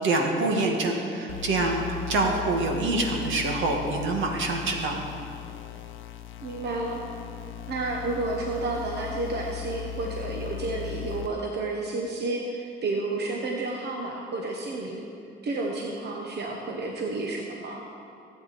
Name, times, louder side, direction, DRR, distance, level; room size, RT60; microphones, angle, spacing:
voice 1, 0.0-5.0, right 2 dB, 75° right, 1 dB, 1.7 m, -26 dB
sound 1, 1.3-11.3, left 13 dB, 85° left, 0.7 m, -38 dB
voice 2, 6.4-7.0 7.7-15.0 15.4-17.8, right 2 dB, 55° right, 0 dB, 1.2 m, -31 dB
16.5 x 8.4 x 4.2 m, 2.6 s
cardioid pair, 90°, 20 cm